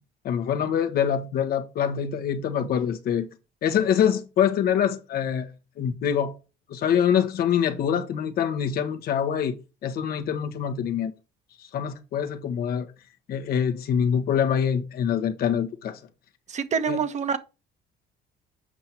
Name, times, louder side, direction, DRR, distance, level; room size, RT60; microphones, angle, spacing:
voice 1, 0.2-3.3 3.6-5.5 5.8-6.3 6.7-9.6 9.8-11.1 11.7-12.9 13.3-16.0 16.9-17.0, left 8 dB, 65° left, 1.2 m, -25 dB
voice 2, 16.5-17.4, right 6 dB, 45° right, 1.1 m, -26 dB
7.6 x 5.4 x 4.5 m
cardioid pair, 110°, 17 cm